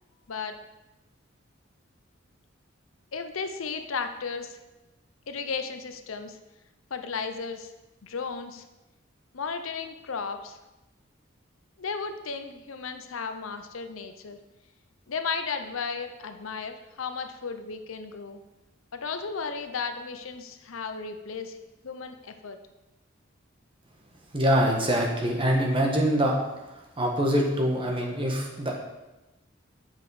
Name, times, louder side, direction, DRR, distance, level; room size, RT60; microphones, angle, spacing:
voice 1, 3.1-4.6 5.3-6.4 6.9-7.7 8.0-8.6 9.3-10.6 11.8-14.4 15.1-18.4 18.9-21.6 21.8-22.6, left 5 dB, 85° left, 8 dB, 0.7 m, -34 dB
voice 2, 24.3-26.4 26.7-28.8, equal, 25° right, 0 dB, 1.3 m, -24 dB
7.4 x 5.9 x 4.9 m, 1.0 s
head